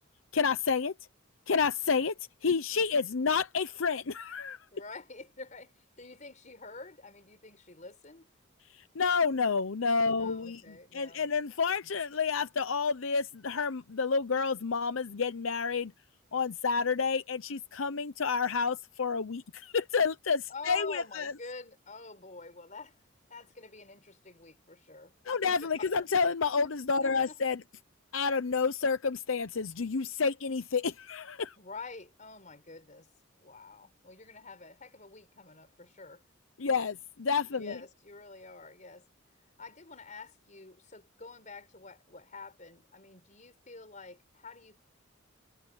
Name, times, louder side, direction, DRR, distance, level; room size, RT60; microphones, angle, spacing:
voice 1, 0.3-0.9 1.5-2.1 2.4-4.6 8.9-10.6 10.9-15.9 16.3-21.3 25.3-27.6 28.1-31.5 36.6-37.8, left 5 dB, 80° left, 0.7 m, -29 dB
voice 2, 2.5-3.1 4.7-8.3 10.1-11.3 20.5-23.0 23.3-25.9 26.6-26.7 27.0-27.4 31.6-33.1 33.4-36.2 37.5-39.1 39.6-44.8, left 3 dB, 40° left, 5.0 m, -48 dB
head